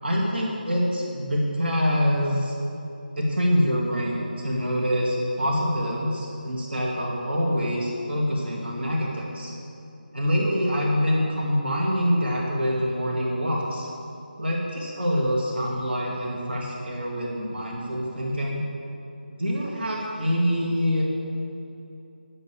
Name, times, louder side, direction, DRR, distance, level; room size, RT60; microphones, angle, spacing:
voice 1, 0.0-2.5 3.1-9.5 10.1-13.9 14.4-18.6 19.3-21.0, equal, 80° right, -3 dB, 2.4 m, -25 dB
14.5 x 5.4 x 7.6 m, 2.8 s
figure-of-eight pair, 165°, 6 cm